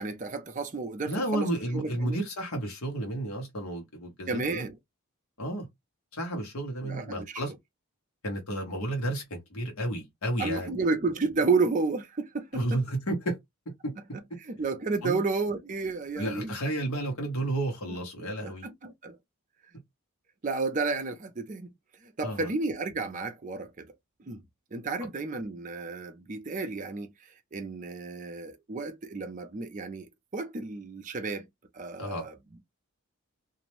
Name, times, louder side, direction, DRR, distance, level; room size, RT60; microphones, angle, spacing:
voice 1, 0.0-1.5 1.7-2.2 4.3-4.8 6.8-7.3 10.4-12.8 14.4-16.6 17.9-18.0 18.4-19.2 20.4-21.7 22.2-23.9 24.3-24.4 24.7-27.1 27.5-31.4 31.7-32.3, right 3 dB, 35° right, 0.5 m, -31 dB
voice 2, 1.1-4.6 5.4-5.7 6.1-7.5 8.2-10.8 12.5-13.4 13.8-13.9 15.0-15.2 16.2-18.7 22.2-22.5 32.0-32.3, right 1 dB, 75° left, 1.0 m, -32 dB
2.5 x 2.1 x 3.0 m
head